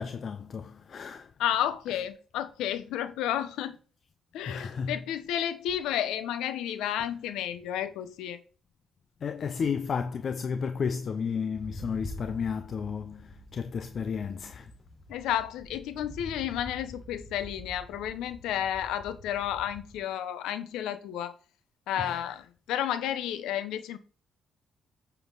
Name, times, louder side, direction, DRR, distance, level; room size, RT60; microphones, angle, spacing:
voice 1, 0.0-1.3 4.5-5.0 9.2-14.7 22.0-22.2, left 6 dB, 50° left, 0.6 m, -33 dB
voice 2, 1.4-3.8 4.3-8.4 15.1-21.3 21.9-24.0, left 11 dB, 90° left, 1.0 m, -32 dB
sound 1, 11.5-20.0, left 1 dB, 35° left, 4.1 m, -46 dB
9.2 x 7.0 x 4.0 m
cardioid pair, 90°, 0 cm